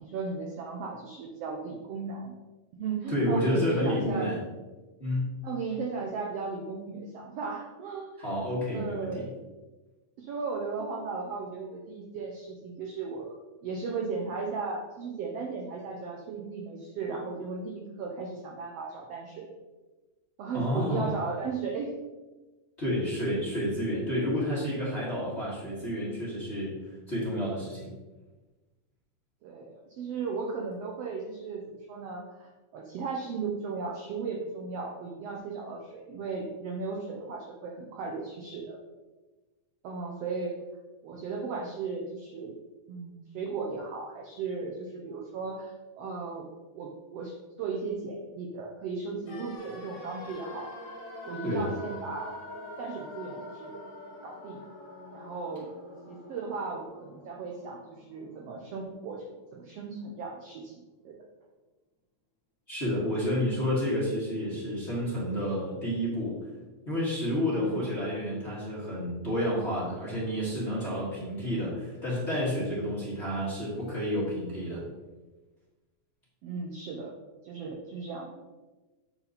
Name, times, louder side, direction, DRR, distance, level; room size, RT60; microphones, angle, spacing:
voice 1, 0.0-2.4 2.7-4.3 5.4-8.3 8.7-9.3 10.2-19.5 20.4-21.9 23.3-23.4 29.4-38.8 39.8-40.6 41.0-42.6 42.9-46.5 46.7-50.7 51.2-52.4 52.8-53.8 54.2-54.6 55.1-55.7 56.1-59.2 59.5-60.7 61.0-61.2 67.6-67.8 76.4-77.1 77.4-78.4, right 4 dB, 85° right, 0 dB, 1.4 m, -36 dB
voice 2, 3.1-4.4 5.0-5.3 8.2-9.3 20.5-21.1 22.8-26.7 27.1-27.9 51.4-51.7 62.7-66.4 66.9-74.8, equal, 30° left, -8 dB, 1.4 m, -30 dB
sound 1, 49.3-59.2 59.5-59.6, left 1 dB, 50° left, 2.0 m, -45 dB
8.0 x 4.5 x 4.0 m, 1.2 s
omnidirectional pair, 3.7 m